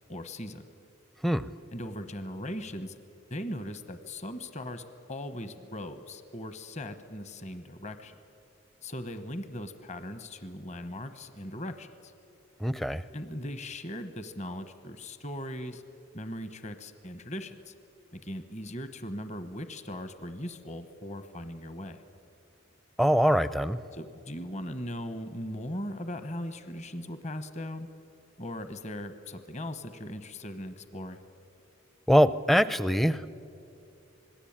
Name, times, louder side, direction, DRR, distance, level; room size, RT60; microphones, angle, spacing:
voice 1, 0.1-0.7 1.7-3.0 3.3-8.1 8.8-12.1 13.1-15.8 16.1-17.7 18.1-22.0 23.9-27.9 28.4-31.2, left 1 dB, 35° left, 10 dB, 1.0 m, -39 dB
voice 2, 12.6-13.0 23.0-23.8 32.1-33.3, equal, ahead, 15 dB, 0.5 m, -23 dB
26.5 x 20.0 x 8.8 m, 2.5 s
head